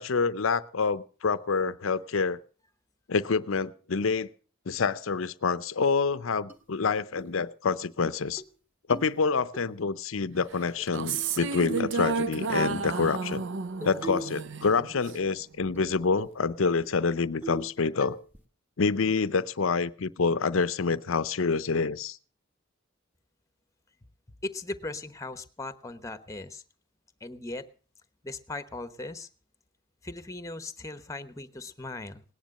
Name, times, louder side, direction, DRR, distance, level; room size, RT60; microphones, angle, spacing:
voice 1, 0.0-2.4 3.1-4.3 4.7-8.4 8.9-13.4 13.8-18.2 18.8-22.2, left 4 dB, 70° left, 16 dB, 0.6 m, -27 dB
sound 1, 6.5-6.6 7.2-7.4 7.7-7.8 8.2-8.5 8.9-9.6 10.7-11.3 11.7-12.0 12.6-12.8 13.8-14.4 14.7-15.4 15.7-15.8 16.2-16.4 16.8-16.9 17.4-17.7 18.0-18.4, right 1 dB, 10° right, 1.5 m, -40 dB
sound 2, 10.8-15.3, right 4 dB, 60° right, 0.6 m, -32 dB
voice 2, 24.4-26.6 27.2-27.7 28.2-29.3 30.0-32.2, left 2 dB, 15° left, 12 dB, 1.0 m, -38 dB
18.5 x 10.5 x 6.5 m, 0.40 s
head